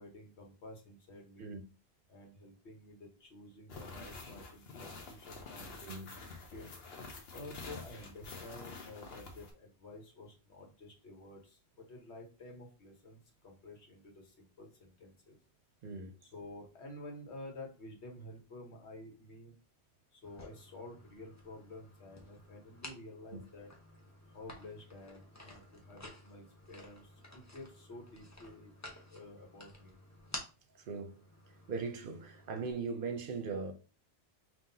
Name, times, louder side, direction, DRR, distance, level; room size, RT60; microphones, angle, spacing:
voice 1, 0.0-1.6 2.1-5.8 6.5-6.7 7.3-15.4 16.2-19.6 20.1-23.7 24.3-28.7 29.1-30.0, left 2 dB, 90° left, 1.5 m, -51 dB
sound 1, 3.7-9.5, left 3 dB, 70° left, 1.1 m, -48 dB
voice 2, 5.8-6.2 15.8-16.2 23.3-23.4 30.9-31.2 31.7-33.7, right 4 dB, 60° right, 0.8 m, -39 dB
sound 2, 20.2-32.7, left 1 dB, 20° left, 0.7 m, -52 dB
5.6 x 2.9 x 2.7 m
omnidirectional pair, 1.1 m